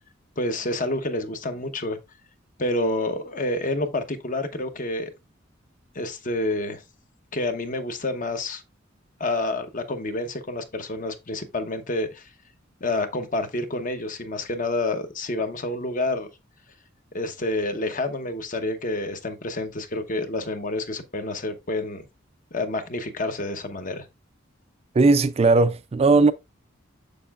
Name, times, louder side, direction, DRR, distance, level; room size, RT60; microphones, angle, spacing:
voice 1, 0.4-2.0 2.6-5.1 5.9-6.8 7.3-8.6 9.2-12.3 12.8-16.3 17.1-22.0 22.5-24.0, left 2 dB, 45° left, 0.9 m, -28 dB
voice 2, 25.0-26.3, right 3 dB, 30° right, 0.3 m, -17 dB
6.7 x 6.5 x 2.4 m
head